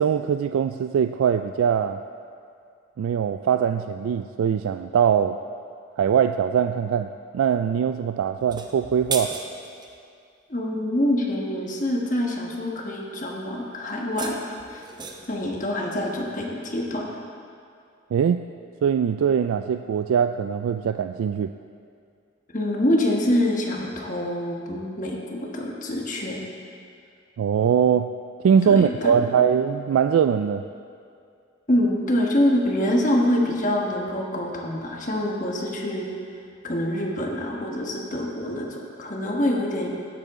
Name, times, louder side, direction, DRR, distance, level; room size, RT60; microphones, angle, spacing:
voice 1, 0.0-2.0 3.0-5.4 6.0-7.1 7.3-9.3 18.1-18.4 18.8-21.5 27.4-28.1 28.4-30.7, right 7 dB, 85° right, 8 dB, 0.3 m, -22 dB
sound 1, 8.4-9.9 13.9-15.4, right 4 dB, 20° right, 0.7 m, -34 dB
voice 2, 10.5-14.4 14.7-14.9 15.3-17.0 22.5-26.4 28.7-29.3 31.7-36.1 36.6-39.9, left 1 dB, 40° left, -1 dB, 1.3 m, -25 dB
17.0 x 8.0 x 3.7 m, 2.4 s
head